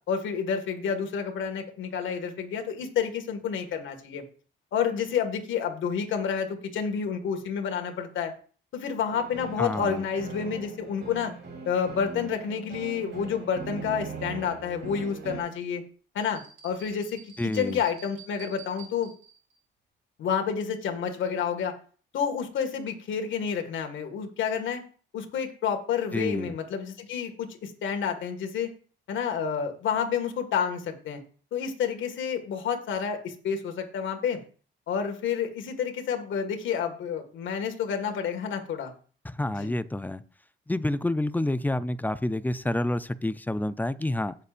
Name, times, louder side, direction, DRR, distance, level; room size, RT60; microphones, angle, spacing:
voice 1, 0.1-4.2 4.7-8.3 8.7-11.3 11.7-15.8 16.1-19.1 20.2-21.8 22.1-24.8 25.1-28.7 29.1-31.2 31.5-34.4 34.9-38.9 39.6-39.7, left 7 dB, 75° left, 5 dB, 1.9 m, -29 dB
sound 1, 9.1-15.4, right 4 dB, 60° right, 3.5 m, -40 dB
voice 2, 9.6-10.0 17.4-17.8 26.1-26.5 39.2-40.2 40.7-44.4, left 1 dB, 10° left, 14 dB, 0.5 m, -28 dB
sound 2, 16.2-19.6, right 6 dB, 85° right, 4.5 m, -50 dB
17.0 x 6.7 x 2.5 m, 0.41 s
cardioid pair, 90°, 20 cm